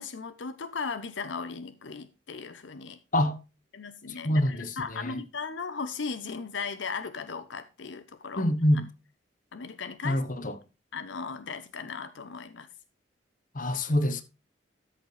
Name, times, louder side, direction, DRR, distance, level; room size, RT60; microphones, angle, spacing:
voice 1, 0.0-3.0 3.7-8.5 9.5-10.2 10.9-12.7, left 5 dB, 70° left, 0.7 m, -37 dB
voice 2, 4.1-5.2 8.4-8.8 10.0-10.6 13.5-14.2, left 1 dB, 45° left, 1.0 m, -26 dB
13.0 x 6.9 x 3.2 m
head